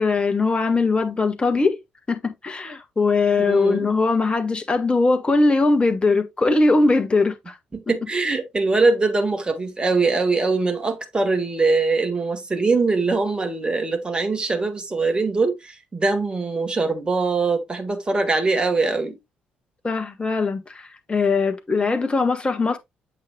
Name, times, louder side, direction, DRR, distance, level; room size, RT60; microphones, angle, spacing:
voice 1, 0.0-1.8 2.1-7.5 19.8-22.8, left 3 dB, 25° left, 1.6 m, -20 dB
voice 2, 3.4-3.9 7.7-19.2 21.7-21.9, right 3 dB, 20° right, 1.8 m, -22 dB
8.1 x 6.7 x 2.3 m
figure-of-eight pair, 45°, 4 cm